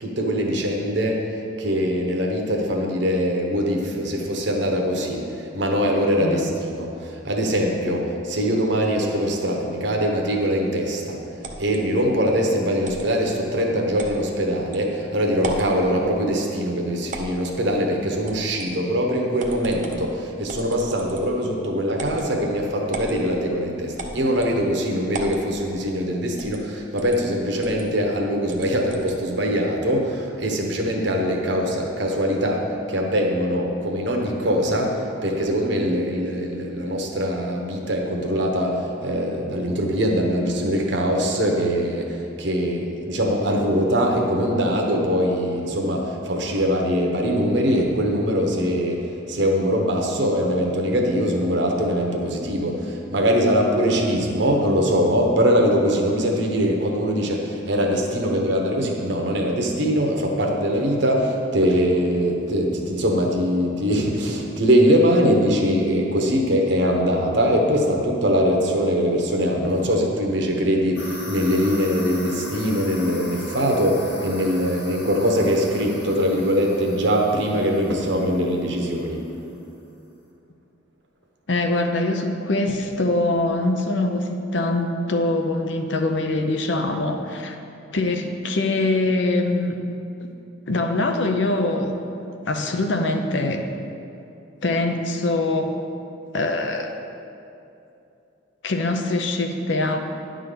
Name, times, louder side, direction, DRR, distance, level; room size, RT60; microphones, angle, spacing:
voice 1, 0.0-11.2 11.6-79.2, equal, 60° right, 1 dB, 1.0 m, -22 dB
sound 1, 11.4-11.8 12.8-13.1 14.0-14.2 14.7-14.8 15.3-15.7 17.1-17.6 18.3-18.7 19.4-20.0 20.5-21.4 21.9-22.3 22.9-23.2 24.0-24.5 25.1-25.4 26.4-26.6 27.0-27.2 27.6-27.8 28.5-29.2, right 2 dB, 40° right, 0.7 m, -35 dB
sound 2, 71.0-79.2, left 2 dB, 50° left, 1.5 m, -39 dB
voice 2, 81.5-87.6 87.9-89.7 90.2-90.3 90.7-91.9 92.5-93.7 94.6-95.7 96.3-96.9 98.6-100.0, left 2 dB, 65° left, 5 dB, 0.6 m, -23 dB
10.0 x 3.8 x 6.7 m, 2.7 s
head